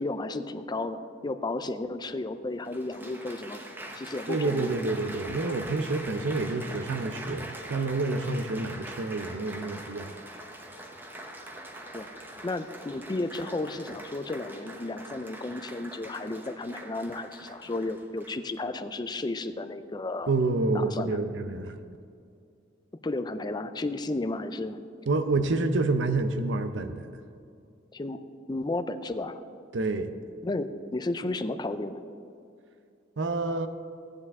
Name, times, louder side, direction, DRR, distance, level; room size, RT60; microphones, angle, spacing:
voice 1, 0.0-3.6 4.0-4.7 11.9-20.3 20.7-21.2 23.0-24.8 27.9-28.2 28.5-29.4 30.4-32.0, left 2 dB, 20° left, 10 dB, 0.4 m, -33 dB
Applause, 1.9-2.0 2.6-18.6 19.3-19.6, right 1 dB, 10° right, 0.9 m, -43 dB
voice 2, 4.3-10.1 20.3-21.8 25.1-27.1 29.7-30.1 33.2-33.7, right 3 dB, 65° right, 9 dB, 0.6 m, -28 dB
14.5 x 9.6 x 3.6 m, 2.4 s
head